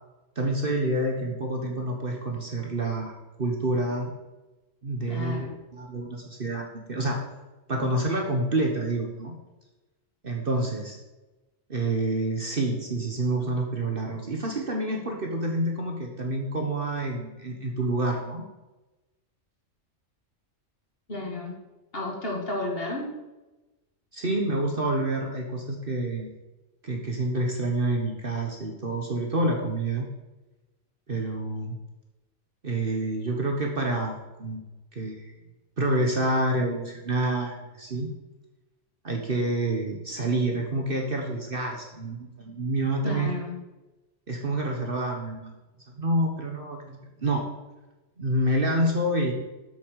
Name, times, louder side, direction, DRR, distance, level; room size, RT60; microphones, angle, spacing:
voice 1, 0.3-3.1 3.4-4.1 4.8-7.2 7.7-9.4 10.2-11.0 11.7-18.4 24.1-26.4 26.8-30.1 31.1-31.8 32.6-35.3 35.8-38.1 39.0-43.3 44.3-45.5 45.9-47.5 48.2-49.3, right 1 dB, 45° right, 1 dB, 1.5 m, -28 dB
voice 2, 5.1-5.5 21.1-21.6 21.9-23.1 43.0-43.6, left 2 dB, 45° left, 0 dB, 2.3 m, -32 dB
8.3 x 7.2 x 6.5 m, 1.1 s
omnidirectional pair, 1.4 m